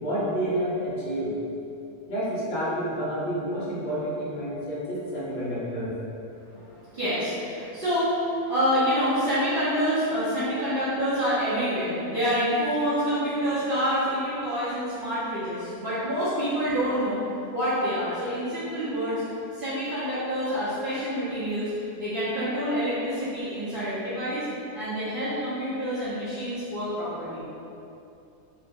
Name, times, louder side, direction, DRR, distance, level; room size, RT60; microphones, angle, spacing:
voice 1, 0.0-1.3 2.1-5.9, equal, 45° left, -8 dB, 0.8 m, -29 dB
voice 2, 6.5-17.2 17.5-19.2 19.6-24.5 24.7-27.4, equal, 55° right, -13 dB, 0.6 m, -27 dB
2.8 x 2.0 x 3.5 m, 2.7 s
omnidirectional pair, 1.6 m